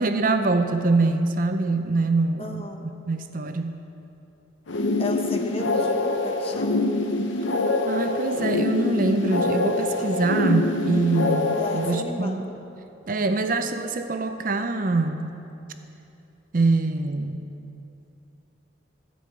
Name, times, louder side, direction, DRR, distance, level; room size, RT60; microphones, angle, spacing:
voice 1, 0.0-2.7 3.1-3.8 7.9-12.4 13.1-15.3 16.5-17.4, right 3 dB, 45° right, 7 dB, 0.5 m, -24 dB
voice 2, 2.4-2.9 5.0-6.9 11.5-12.6, left 2 dB, 30° left, 3 dB, 0.9 m, -34 dB
sound 1, 4.7-12.0, left 2 dB, 80° left, 0.7 m, -25 dB
13.5 x 5.4 x 7.8 m, 2.8 s
head